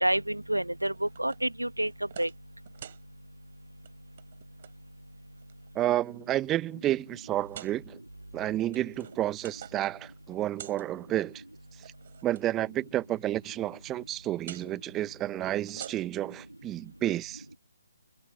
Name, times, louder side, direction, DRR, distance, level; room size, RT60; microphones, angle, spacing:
voice 1, 0.0-1.9 2.2-2.3, right 1 dB, 85° right, 1.3 m, -28 dB
sound 1, 0.9-1.5 1.8-2.4 2.7-3.0 3.7-3.9 4.2-4.7 5.4-5.9 6.5-6.6 7.4-7.8 8.5-9.9 10.2-10.9 11.7-12.4 14.4-14.7 15.5-16.3, right 9 dB, 40° right, 4.9 m, -47 dB
voice 2, 5.7-8.0 8.3-11.4 12.2-17.4, right 13 dB, 15° right, 1.1 m, -30 dB
figure-of-eight pair, 140°, 0 cm